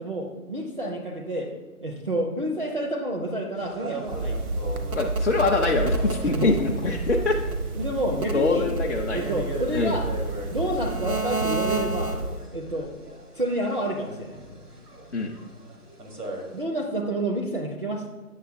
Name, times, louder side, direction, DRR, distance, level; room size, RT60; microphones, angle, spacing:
voice 1, 0.0-1.5 1.8-4.4 6.2-6.5 7.7-8.7 9.1-10.1 10.5-12.2 12.5-12.9 13.3-14.4 16.5-18.1, right 1 dB, 40° right, 1 dB, 0.4 m, -29 dB
sound 1, 3.6-16.6, right 1 dB, 85° right, 1.3 m, -40 dB
sound 2, 4.1-12.4, right 3 dB, 70° right, 0.8 m, -29 dB
voice 2, 4.9-7.4 8.3-9.2 9.7-10.0 15.1-15.3, left 3 dB, 50° left, 0 dB, 0.5 m, -24 dB
8.1 x 6.4 x 2.5 m, 1.3 s
figure-of-eight pair, 145°, 45 cm